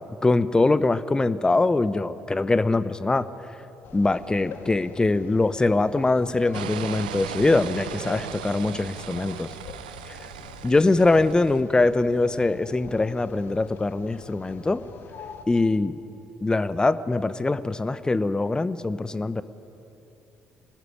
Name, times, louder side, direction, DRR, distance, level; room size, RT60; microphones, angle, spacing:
voice 1, 0.2-3.3 3.9-9.5 10.1-10.2 10.6-14.8 15.5-16.0 16.4-19.4, left 2 dB, 15° left, 15 dB, 0.9 m, -23 dB
sound 1, 3.8-15.5, left 6 dB, 50° left, 2.1 m, -45 dB
sound 2, 6.5-11.6, right 11 dB, 75° right, 0.8 m, -37 dB
26.5 x 19.0 x 9.6 m, 2.9 s
figure-of-eight pair, 50°, 5 cm